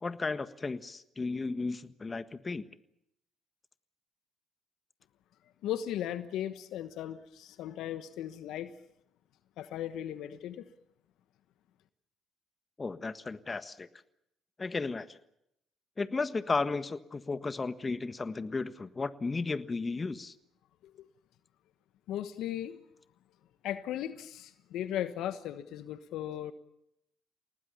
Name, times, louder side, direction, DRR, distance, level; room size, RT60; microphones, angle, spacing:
voice 1, 0.0-2.6 12.8-13.9 14.6-15.2 16.0-20.3, left 3 dB, 30° left, 12 dB, 1.5 m, -34 dB
voice 2, 5.6-8.7 9.6-10.7 20.8-21.1 22.1-22.8 23.6-26.5, left 11 dB, 75° left, 12 dB, 1.2 m, -37 dB
30.0 x 19.0 x 7.1 m, 0.79 s
hypercardioid pair, 55°, 0 cm